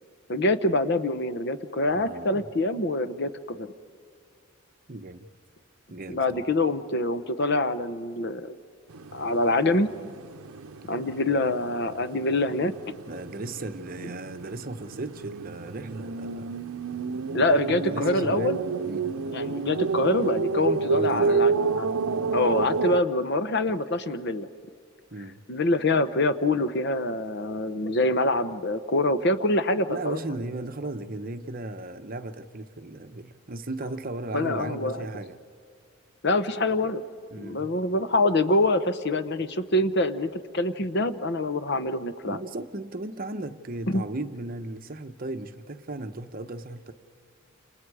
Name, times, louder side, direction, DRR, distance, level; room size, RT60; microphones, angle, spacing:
voice 1, 0.3-3.7 6.1-8.5 9.1-9.9 10.9-12.7 17.3-18.6 19.3-21.9 22.3-24.5 25.5-30.2 34.3-35.1 36.2-37.0 37.4-42.4 43.9-44.0, left 2 dB, 50° left, 12 dB, 0.9 m, -25 dB
voice 2, 1.9-2.4 4.9-5.3 5.9-6.5 13.1-16.5 17.7-18.6 18.8-19.2 20.9-21.5 25.1-25.4 29.9-35.4 37.3-37.7 42.2-46.9, right 2 dB, 40° right, 8 dB, 1.0 m, -36 dB
sound 1, 8.9-23.0, right 5 dB, 85° right, 0.7 m, -30 dB
29.5 x 28.0 x 4.9 m, 2.2 s
head